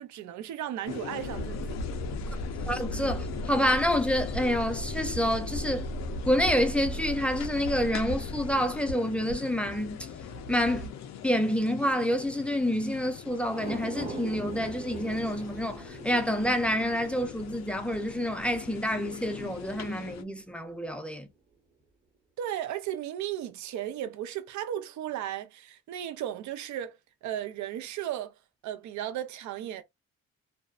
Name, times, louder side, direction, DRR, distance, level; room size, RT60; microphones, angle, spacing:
voice 1, 0.0-1.8 22.4-28.4 28.6-29.8, right 11 dB, 70° right, 0.5 m, -35 dB
sound 1, 0.9-20.2, left 9 dB, 65° left, 0.4 m, -42 dB
sound 2, 1.2-10.9, equal, 90° left, 0.8 m, -37 dB
voice 2, 2.7-5.9 6.2-10.0 10.5-10.9 11.2-21.3, equal, 5° left, 0.4 m, -28 dB
sound 3, 13.4-20.0 20.4-20.5, right 3 dB, 20° right, 1.0 m, -43 dB
2.5 x 2.1 x 2.3 m
cardioid pair, 90°, 30 cm